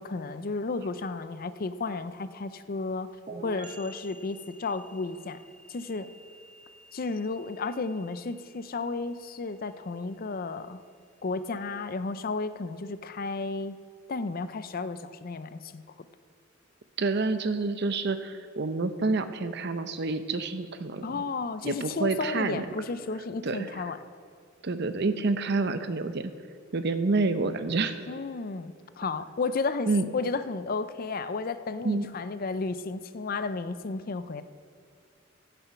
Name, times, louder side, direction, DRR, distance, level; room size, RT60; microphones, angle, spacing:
voice 1, 0.0-3.1 3.4-5.4 5.7-6.1 6.9-10.8 11.2-13.8 14.1-15.8 21.0-24.0 28.1-34.4, left 3 dB, 45° left, 12 dB, 0.5 m, -33 dB
sound 1, 3.3-10.8, right 2 dB, 40° right, 1.1 m, -50 dB
voice 2, 17.0-21.2 21.6-22.7 23.4-23.7 24.6-26.3 26.7-28.0 29.9-30.1 31.8-32.1, right 3 dB, 55° right, 10 dB, 0.7 m, -28 dB
15.5 x 7.0 x 5.8 m, 2.2 s
head